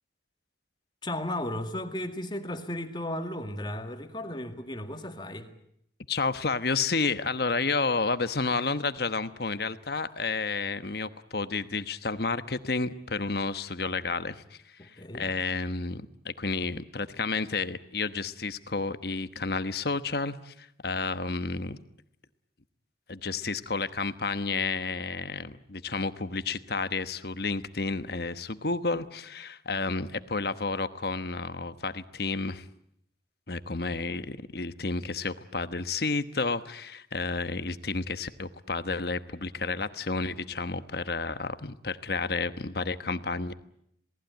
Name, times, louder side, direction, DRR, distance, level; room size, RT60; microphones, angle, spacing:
voice 1, 1.0-5.5 14.8-15.3, left 1 dB, 25° left, 2.0 m, -35 dB
voice 2, 6.1-14.4 14.8-21.8 23.1-32.6 33.5-43.5, left 4 dB, 55° left, 1.2 m, -31 dB
27.5 x 19.0 x 9.3 m
head